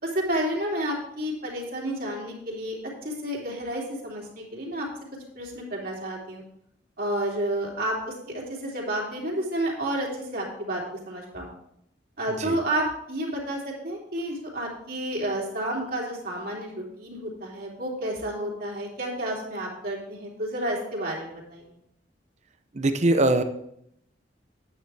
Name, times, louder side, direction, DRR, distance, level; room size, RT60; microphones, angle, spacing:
voice 1, 0.0-4.9 5.3-6.4 7.0-11.5 12.2-21.6, right 1 dB, 55° right, -3 dB, 2.9 m, -30 dB
voice 2, 22.7-23.4, right 2 dB, 40° right, 9 dB, 0.7 m, -21 dB
9.4 x 9.0 x 3.4 m, 0.73 s
head